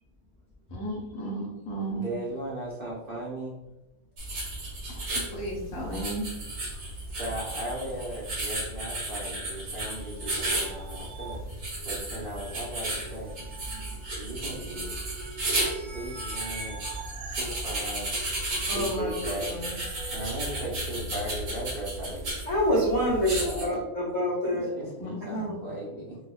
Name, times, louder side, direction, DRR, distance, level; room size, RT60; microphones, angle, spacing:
voice 1, 0.7-2.2 5.1-6.3 24.5-24.6 25.0-25.4, right 1 dB, 70° left, -2 dB, 1.3 m, -34 dB
voice 2, 1.9-3.6 7.1-11.4 11.8-13.3 14.2-14.9 15.6-16.9 17.2-18.2 18.6-23.1 23.4-23.8 24.7-26.2, right 1 dB, 50° right, -6 dB, 0.8 m, -37 dB
sound 1, 4.2-23.7, right 1 dB, 85° right, 1.7 m, -34 dB
sound 2, 10.0-20.7, right 3 dB, 70° right, 1.1 m, -45 dB
voice 3, 18.7-19.7 22.5-24.7 25.2-25.6, equal, 40° left, -7 dB, 0.6 m, -27 dB
4.9 x 2.2 x 2.3 m, 0.95 s
omnidirectional pair, 1.5 m